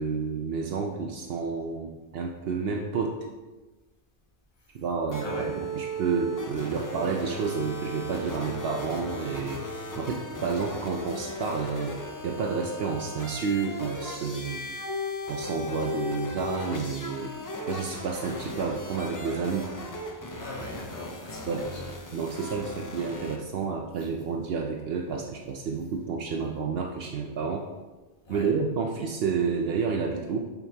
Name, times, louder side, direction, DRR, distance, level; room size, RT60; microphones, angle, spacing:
voice 1, 0.0-3.2 4.7-12.0 12.2-14.6 15.3-17.3 17.7-19.7 21.5-21.7 22.1-27.6 28.3-30.4, right 5 dB, 70° right, 1 dB, 0.8 m, -30 dB
sound 1, 5.1-23.4, left 1 dB, 25° left, 0.4 m, -37 dB
voice 2, 20.4-21.9 28.2-28.5, left 2 dB, 55° left, -3 dB, 1.5 m, -39 dB
7.0 x 5.3 x 2.8 m, 1.2 s
omnidirectional pair, 1.1 m